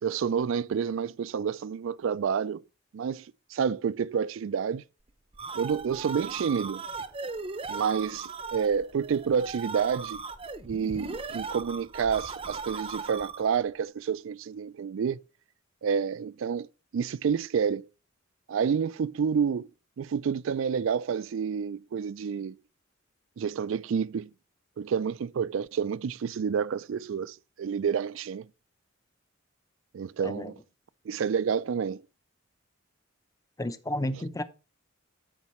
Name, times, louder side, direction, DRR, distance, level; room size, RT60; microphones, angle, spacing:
voice 1, 0.0-2.6 2.9-4.8 5.5-6.8 7.7-10.2 10.6-15.2 15.8-16.7 16.9-17.9 18.5-19.7 20.0-22.6 23.4-24.3 24.8-28.5 29.9-30.6 31.1-32.0 34.2-34.3, right 6 dB, 65° right, 0.3 m, -29 dB
sound 1, 5.1-13.6, right 4 dB, 25° right, 0.6 m, -38 dB
voice 2, 33.6-34.4, left 1 dB, 15° left, 0.6 m, -31 dB
13.5 x 5.3 x 3.0 m
head